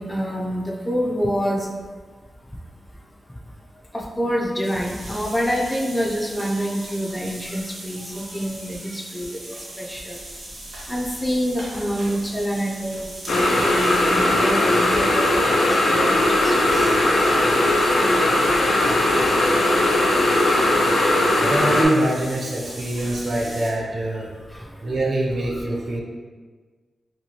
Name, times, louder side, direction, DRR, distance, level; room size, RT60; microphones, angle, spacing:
voice 1, 0.0-1.7 3.9-10.2 10.9-15.6 15.9-16.9 24.5-24.6, equal, 15° left, 0 dB, 0.4 m, -27 dB
sound 1, 4.6-23.7, right 1 dB, 85° right, 0.8 m, -40 dB
sound 2, 13.3-21.9, left 1 dB, 90° left, 0.4 m, -19 dB
voice 2, 21.4-24.3 24.8-26.0, right 1 dB, 55° right, -2 dB, 0.6 m, -24 dB
2.8 x 2.3 x 2.8 m, 1.4 s
cardioid pair, 70°, 0 cm